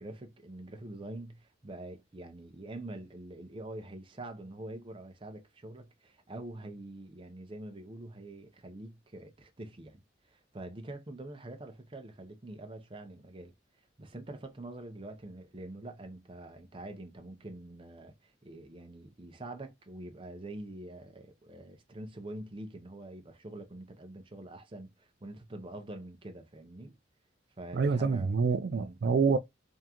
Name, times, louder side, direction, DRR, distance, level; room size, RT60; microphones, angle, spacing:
voice 1, 0.0-10.0 10.3-13.5 14.0-27.0 27.6-28.4 28.7-29.0, right 1 dB, 30° right, 0.7 m, -45 dB
voice 2, 27.7-29.4, right 5 dB, 60° right, 0.4 m, -27 dB
3.6 x 3.6 x 2.9 m
head